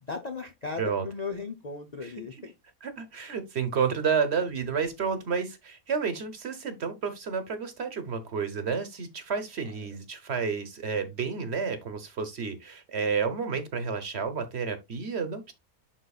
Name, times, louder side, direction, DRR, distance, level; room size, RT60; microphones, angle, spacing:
voice 1, 0.0-2.5, left 4 dB, 45° left, 0.6 m, -36 dB
voice 2, 2.8-15.5, right 6 dB, 50° right, 1.2 m, -30 dB
11.0 x 4.0 x 2.4 m
omnidirectional pair, 1.5 m